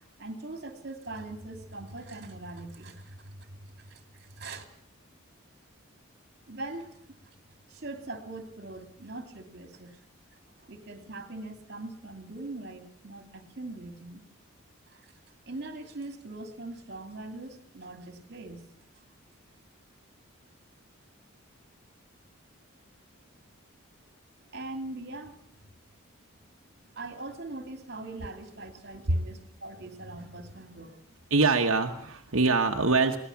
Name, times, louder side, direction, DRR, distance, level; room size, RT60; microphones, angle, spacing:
voice 1, 0.2-4.6 6.5-6.9 7.7-10.0 10.6-14.2 14.9-15.0 15.5-18.7 24.5-25.7 26.9-31.0, right 2 dB, 50° right, 7 dB, 2.7 m, -41 dB
voice 2, 31.3-33.2, right 3 dB, 80° right, 3 dB, 1.2 m, -24 dB
22.0 x 17.0 x 7.2 m, 0.65 s
head